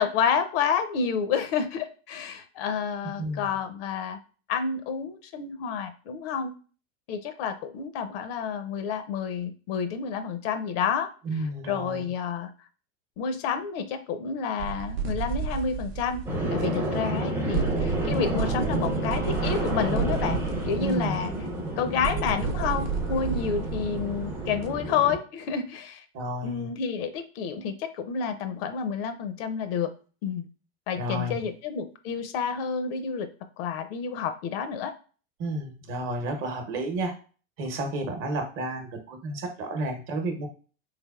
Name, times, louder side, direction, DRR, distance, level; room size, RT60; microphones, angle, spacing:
voice 1, 0.0-4.2 4.5-6.5 7.1-11.1 11.3-12.5 13.2-16.2 16.5-20.4 20.6-21.3 21.8-26.0 26.4-29.9 30.2-30.5 30.9-33.3 33.6-34.9, left 6 dB, 60° left, 9 dB, 0.6 m, -29 dB
voice 2, 3.2-3.5 11.2-12.1 20.8-21.1 26.1-26.7 30.9-31.4 35.4-37.1 37.6-40.5, right 1 dB, 40° right, 5 dB, 0.9 m, -31 dB
sound 1, 14.6-17.2 17.5-24.7, right 6 dB, 70° right, 0.7 m, -32 dB
sound 2, 16.3-25.2, right 1 dB, 5° right, 0.5 m, -30 dB
3.5 x 3.3 x 2.3 m, 0.37 s
supercardioid pair, 140°, 33 cm